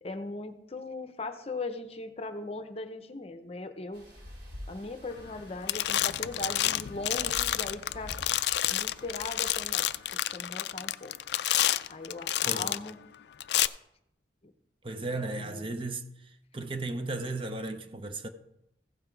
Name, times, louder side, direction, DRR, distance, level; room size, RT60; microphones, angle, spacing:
voice 1, 0.0-4.1 4.7-8.2 8.7-9.9 10.3-11.2 11.9-13.0 15.3-15.8, left 2 dB, 35° left, 0.7 m, -39 dB
sound 1, 3.9-10.0, left 1 dB, 70° right, 3.4 m, -48 dB
sound 2, 5.2-5.4 5.7-12.9 13.4-13.7, left 13 dB, 65° left, 0.3 m, -29 dB
voice 2, 12.4-12.8 14.8-16.1 16.5-18.3, right 2 dB, 30° right, 0.6 m, -35 dB
15.5 x 5.7 x 4.6 m
head